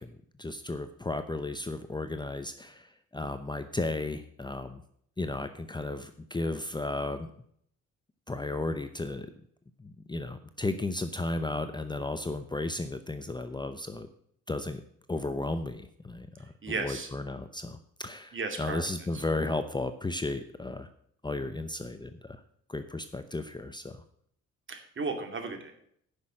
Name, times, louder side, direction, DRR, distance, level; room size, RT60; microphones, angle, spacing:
voice 1, 0.0-4.8 5.2-7.3 8.3-9.3 9.8-14.1 14.5-14.8 15.1-20.9 21.2-22.4 22.7-24.0, left 2 dB, 15° left, 9 dB, 0.7 m, -34 dB
voice 2, 16.6-17.1 18.3-18.9 19.1-19.2 24.7-25.7, right 3 dB, 40° right, 5 dB, 2.5 m, -34 dB
9.8 x 6.4 x 7.6 m, 0.66 s
cardioid pair, 90°, 30 cm